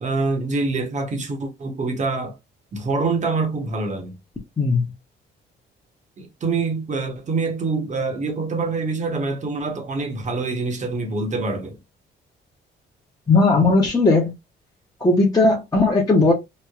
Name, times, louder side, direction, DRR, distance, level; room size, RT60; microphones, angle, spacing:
voice 1, 0.0-2.4 2.7-4.1 6.2-11.8, right 3 dB, 35° right, 0.9 m, -25 dB
voice 2, 4.6-4.9 13.3-14.3 15.0-16.3, left 3 dB, 20° left, 0.7 m, -17 dB
3.0 x 2.1 x 2.3 m
cardioid pair, 90°, 20 cm